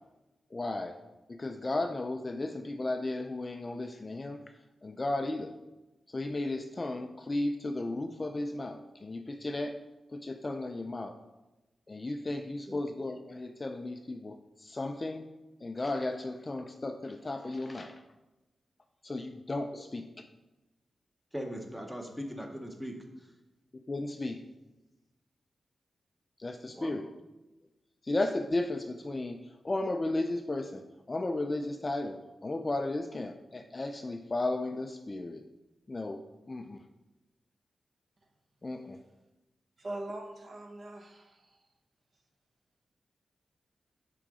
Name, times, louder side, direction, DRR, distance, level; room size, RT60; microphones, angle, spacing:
voice 1, 0.5-1.0 1.3-4.4 4.8-5.5 6.1-9.8 10.1-11.2 11.9-15.3 15.6-18.0 19.0-20.0 23.9-24.4 26.4-27.1 28.0-29.4 29.6-35.4 35.9-36.2 36.5-36.8 38.6-39.0, left 2 dB, 25° left, 6 dB, 0.3 m, -34 dB
voice 2, 21.3-23.0 26.7-26.9, equal, ahead, 3 dB, 0.8 m, -39 dB
voice 3, 39.8-41.6, right 1 dB, 40° right, 4 dB, 0.8 m, -42 dB
10.0 x 3.8 x 4.8 m, 1.0 s
wide cardioid pair, 165°, 0 cm